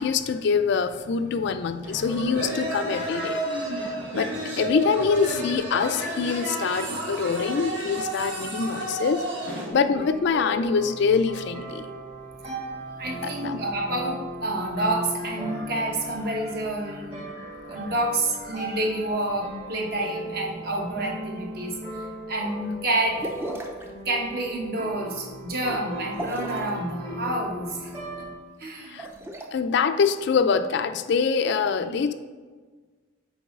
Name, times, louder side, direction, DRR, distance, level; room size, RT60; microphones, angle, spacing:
voice 1, 0.0-3.6 3.8-9.2 9.7-11.9 13.2-13.6 28.9-29.1 29.5-32.1, left 5 dB, 55° left, 10 dB, 0.3 m, -24 dB
sound 1, 1.8-9.7, right 1 dB, 65° right, 1.6 m, -31 dB
sound 2, 9.8-28.4, right 1 dB, 30° right, 1.2 m, -37 dB
voice 2, 13.0-21.8 22.3-23.2 24.0-27.9 28.6-29.0 31.8-32.0, right 1 dB, 50° right, 0 dB, 1.1 m, -29 dB
sound 3, 23.2-23.9 26.1-26.7 28.8-29.5, right 1 dB, 10° right, 0.5 m, -34 dB
7.0 x 4.7 x 3.6 m, 1.4 s
head